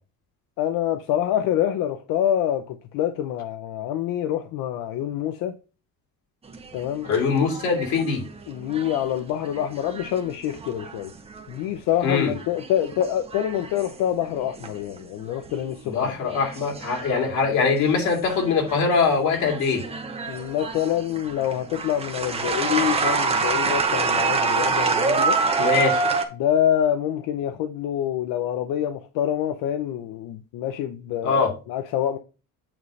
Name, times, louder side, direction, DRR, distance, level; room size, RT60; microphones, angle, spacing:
voice 1, 0.6-5.6 6.7-7.1 8.5-11.1 11.5-16.1 20.3-25.4 26.4-31.4 31.7-32.2, left 10 dB, 85° left, 0.7 m, -26 dB
sound 1, 6.5-11.8 12.2-15.0 15.3-15.7 16.3-19.0 19.3-26.2, right 4 dB, 20° right, 0.9 m, -27 dB
voice 2, 7.0-8.2 12.0-12.3 15.8-19.8 25.6-26.0 31.2-31.5, left 5 dB, 60° left, 3.0 m, -22 dB
8.9 x 3.2 x 5.2 m
cardioid pair, 155°, 33 cm